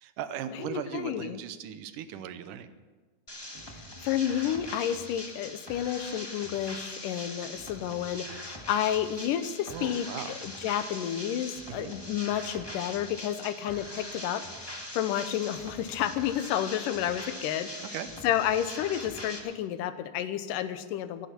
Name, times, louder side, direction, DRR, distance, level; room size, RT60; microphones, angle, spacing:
voice 1, 0.0-2.7 9.7-10.3 11.7-11.9 17.8-18.1, right 9 dB, 80° right, 11 dB, 2.4 m, -38 dB
voice 2, 0.5-1.4 3.7-18.0 18.2-21.3, left 10 dB, 90° left, 11 dB, 2.4 m, -31 dB
sound 1, 3.3-19.4, left 1 dB, 15° left, 0.9 m, -42 dB
23.5 x 11.5 x 4.4 m, 1.3 s
omnidirectional pair, 3.7 m